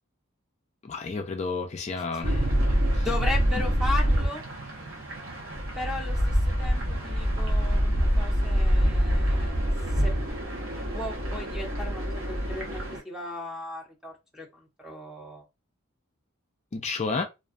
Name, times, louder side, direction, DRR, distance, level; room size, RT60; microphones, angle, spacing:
voice 1, 0.8-2.5 2.9-3.1 3.6-3.7 16.7-17.2, left 4 dB, 30° left, 0.3 m, -31 dB
sound 1, 2.2-13.0, equal, 60° right, 0.8 m, -26 dB
voice 2, 2.8-4.4 5.8-9.7 10.0-10.1 10.9-15.4, left 2 dB, 5° right, 0.7 m, -36 dB
2.5 x 2.3 x 2.4 m
head